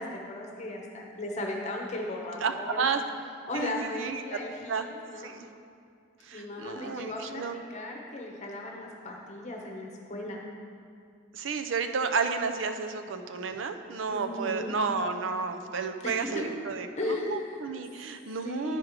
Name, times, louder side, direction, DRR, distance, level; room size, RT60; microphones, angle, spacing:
voice 1, 0.0-2.9 3.5-5.4 6.3-10.4 14.1-14.7 16.0-16.4 17.0-17.6 18.4-18.8, left 1 dB, 40° left, 0 dB, 0.9 m, -36 dB
voice 2, 2.4-3.0 3.5-4.4 4.7-4.9 5.2-5.5 6.2-7.6 11.3-18.8, right 5 dB, 85° right, 7 dB, 0.5 m, -32 dB
9.9 x 4.7 x 4.9 m, 2.3 s
head